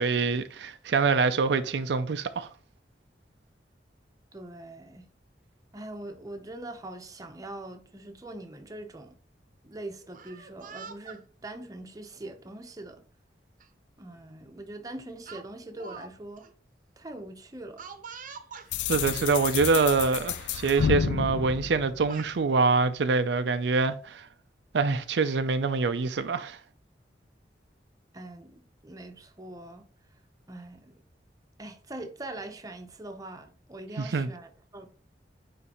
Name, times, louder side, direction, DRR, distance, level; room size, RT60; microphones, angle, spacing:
voice 1, 0.0-2.5 18.9-24.3 24.7-26.6 34.0-34.3, right 4 dB, 75° right, 0.5 m, -25 dB
voice 2, 4.3-5.1 5.7-9.2 9.6-13.0 14.0-16.4 17.0-17.8 28.1-29.9 30.5-31.0 31.6-34.9, right 2 dB, 20° right, 0.8 m, -42 dB
Speech, 10.0-11.2 12.1-12.3 13.6-13.7 14.1-14.3 15.3-16.1 16.4-16.5 17.8-18.7 19.6-19.7 20.1-20.4 20.7-21.0 21.8-22.3, right 5 dB, 50° right, 0.8 m, -45 dB
sound 1, 18.7-22.6, left 7 dB, 90° left, 0.4 m, -30 dB
9.5 x 3.3 x 3.0 m
head